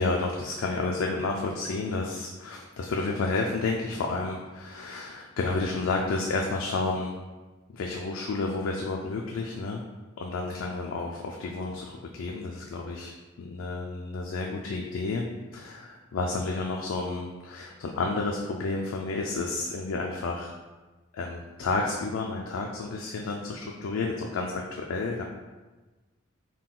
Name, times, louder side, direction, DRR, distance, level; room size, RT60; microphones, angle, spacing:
voice 1, 0.0-7.2 7.7-9.8 10.2-13.1 13.4-15.2 15.5-20.5 21.1-25.2, left 3 dB, 85° left, 0 dB, 0.4 m, -31 dB
3.7 x 2.3 x 3.7 m, 1.2 s
head